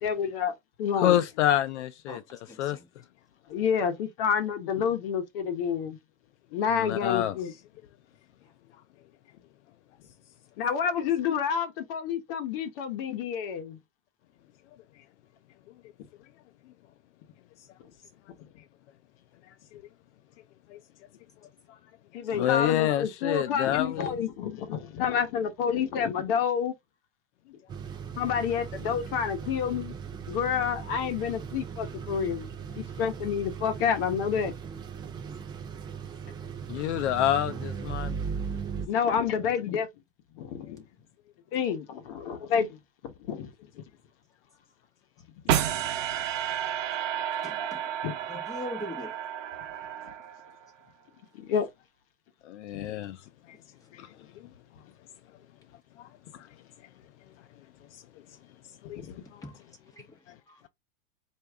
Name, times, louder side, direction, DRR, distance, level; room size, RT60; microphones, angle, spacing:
voice 1, 0.0-1.2 3.5-6.0 6.5-7.5 10.6-13.8 22.1-26.7 28.2-29.9 30.3-32.5 32.8-34.5 38.8-39.9 40.3-40.8 41.5-42.8 43.0-43.5 48.0-48.2 51.3-51.7 52.7-52.9, left 7 dB, 50° left, 1.1 m, -29 dB
voice 2, 0.9-2.8 6.7-7.4 19.7-19.8 20.7-20.8 21.7-21.8 22.3-24.1 36.7-38.2 52.4-53.6 53.9-54.5 56.0-56.5 57.9-58.0 58.8-59.0 59.3-59.4 60.3-60.4, left 12 dB, 65° left, 0.6 m, -28 dB
voice 3, 2.5-2.8 47.4-47.8 48.3-49.2 59.9-60.1 60.5-60.6, left 1 dB, 10° left, 1.5 m, -40 dB
sound 1, 27.7-38.9, right 6 dB, 10° right, 0.4 m, -38 dB
sound 2, 45.5-50.7, right 10 dB, 85° right, 0.8 m, -31 dB
4.6 x 2.6 x 3.5 m
supercardioid pair, 150°, 37 cm